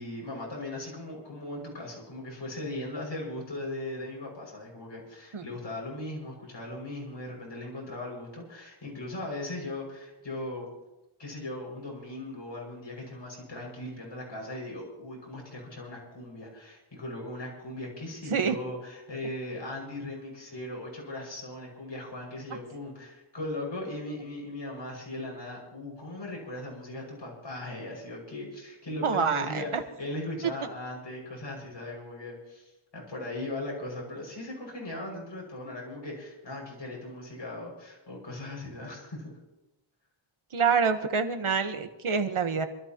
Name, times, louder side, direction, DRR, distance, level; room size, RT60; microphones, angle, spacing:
voice 1, 0.0-10.7 11.2-39.3, left 1 dB, 60° left, -2 dB, 6.4 m, -38 dB
voice 2, 29.0-29.6 40.5-42.7, right 5 dB, 85° right, 7 dB, 1.4 m, -26 dB
26.5 x 13.5 x 3.0 m, 0.99 s
wide cardioid pair, 70°, 49 cm